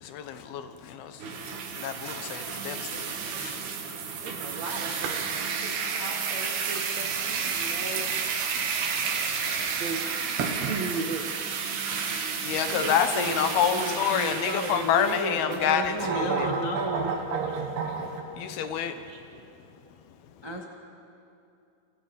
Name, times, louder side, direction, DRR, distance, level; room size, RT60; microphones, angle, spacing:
voice 1, 0.0-1.4 1.8-3.6 12.4-16.5 18.4-19.0, left 8 dB, 75° left, 9 dB, 3.0 m, -28 dB
sound 1, 1.2-18.2, right 5 dB, 80° right, 3.9 m, -31 dB
voice 2, 4.2-8.1 9.7-10.3 10.7-11.3 18.9-19.5, right 4 dB, 55° right, 3 dB, 2.5 m, -37 dB
voice 3, 12.7-17.1 20.4-20.6, right 1 dB, 15° right, 0 dB, 0.8 m, -33 dB
28.5 x 27.0 x 5.4 m, 2.6 s
omnidirectional pair, 4.5 m